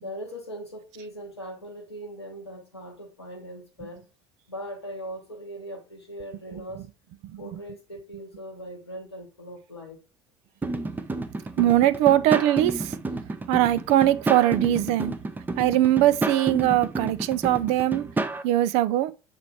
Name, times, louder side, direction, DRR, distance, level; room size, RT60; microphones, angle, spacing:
voice 1, 0.0-4.0 4.5-6.8 7.4-10.0, equal, 90° left, 0.8 m, -40 dB
sound 1, 10.6-18.4, right 3 dB, 15° right, 0.7 m, -31 dB
voice 2, 11.6-12.9 13.5-15.1 15.6-18.1 18.4-19.1, right 13 dB, 55° right, 0.5 m, -21 dB
6.9 x 3.2 x 4.3 m
figure-of-eight pair, 65°, 13 cm